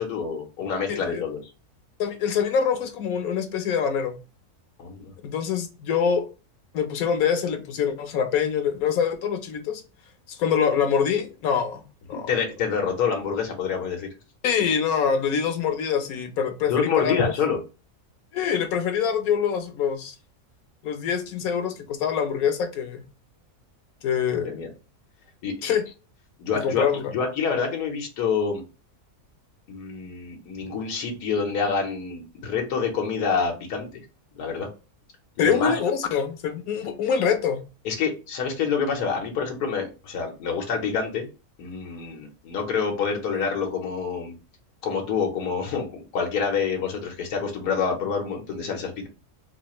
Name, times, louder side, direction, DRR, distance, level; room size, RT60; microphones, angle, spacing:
voice 1, 0.0-1.4 4.8-5.1 12.1-14.1 16.7-17.6 24.3-24.7 25.4-25.5 26.4-26.9 27.1-28.6 29.7-34.0 34.4-34.7 35.4-35.8 37.2-37.3 37.8-41.3 41.6-44.3 44.8-49.1, left 6 dB, 90° left, 1.4 m, -27 dB
voice 2, 0.9-1.2 2.0-4.1 5.2-6.3 6.7-9.8 10.3-11.8 12.1-12.3 14.4-17.2 18.3-20.1 20.8-23.0 24.0-24.6 25.6-25.8 26.6-27.1 35.4-37.6, left 7 dB, 70° left, 1.0 m, -25 dB
4.1 x 2.4 x 2.9 m
omnidirectional pair, 1.6 m